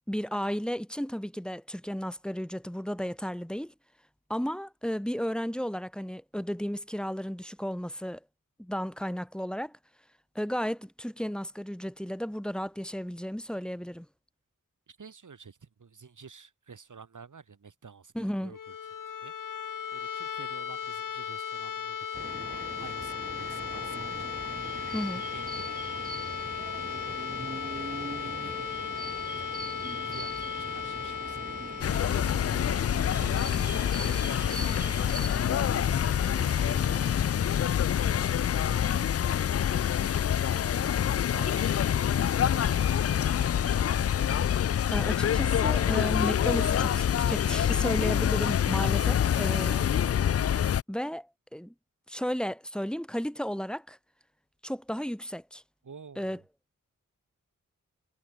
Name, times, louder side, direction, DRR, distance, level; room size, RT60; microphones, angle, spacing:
voice 1, 0.1-3.7 4.3-8.2 8.6-9.8 10.3-14.1 18.1-18.5 24.9-25.2 44.9-50.1 50.9-51.7 52.1-54.0 54.6-55.6 56.2-56.4, equal, 5° left, 2.6 m, -33 dB
voice 2, 14.9-18.8 19.2-25.7 26.6-27.1 28.2-29.0 29.4-32.4 33.1-35.3 36.2-39.6 39.9-40.9 41.3-41.9 42.5-44.1 55.8-56.4, right 5 dB, 65° right, 6.9 m, -51 dB
sound 1, 18.4-34.2, left 8 dB, 75° left, 1.3 m, -37 dB
sound 2, 22.1-37.1, right 2 dB, 25° right, 4.0 m, -41 dB
sound 3, 31.8-50.8, left 9 dB, 50° left, 0.4 m, -26 dB
cardioid pair, 60°, 32 cm